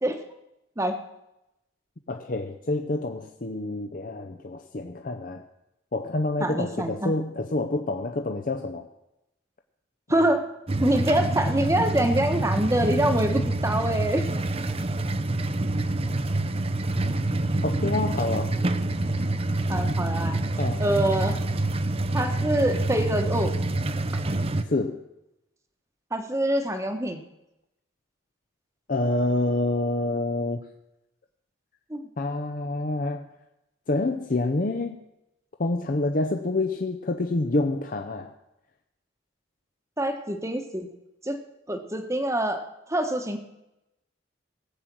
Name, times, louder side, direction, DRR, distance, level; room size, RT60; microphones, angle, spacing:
voice 1, 2.1-5.4 5.9-8.9 17.6-18.6 20.6-20.8 24.6-25.0 28.9-30.6 32.2-33.3 33.9-35.0 35.6-38.3, left 2 dB, 45° left, 4 dB, 0.7 m, -27 dB
voice 2, 6.4-7.1 10.1-10.4 10.8-14.3 19.7-20.4 20.8-21.4 22.1-23.5 26.1-27.2 31.9-32.0 40.0-40.9 41.2-41.4 41.7-42.6 42.9-43.4, right 1 dB, 15° right, 6 dB, 1.2 m, -25 dB
sound 1, 10.7-24.6, right 2 dB, 30° right, 0.6 m, -26 dB
18.5 x 8.0 x 6.1 m, 0.91 s
head